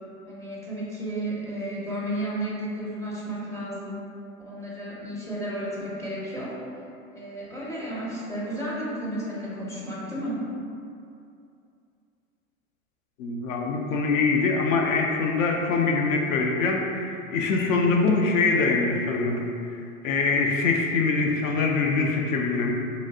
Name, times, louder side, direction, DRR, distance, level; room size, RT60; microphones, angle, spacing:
voice 1, 0.3-4.0 4.5-6.5 7.1-10.4, right 1 dB, 10° left, -7 dB, 0.4 m, -32 dB
voice 2, 13.2-19.4 20.0-22.7, left 4 dB, 65° left, 1 dB, 0.5 m, -23 dB
3.1 x 2.6 x 2.7 m, 2.5 s
hypercardioid pair, 95°, 43 cm